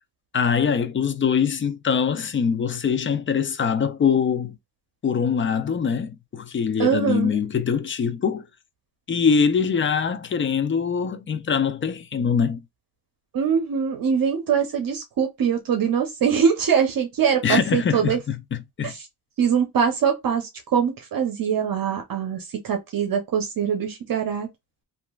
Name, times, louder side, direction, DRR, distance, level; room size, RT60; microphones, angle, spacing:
voice 1, 0.3-4.6 5.0-8.4 9.1-12.6 17.4-18.9, left 6 dB, 30° left, 0.4 m, -23 dB
voice 2, 6.8-7.4 13.3-18.2 18.8-19.0 19.4-24.5, right 7 dB, 55° right, 0.8 m, -23 dB
2.9 x 2.5 x 2.3 m
cardioid pair, 100°, 41 cm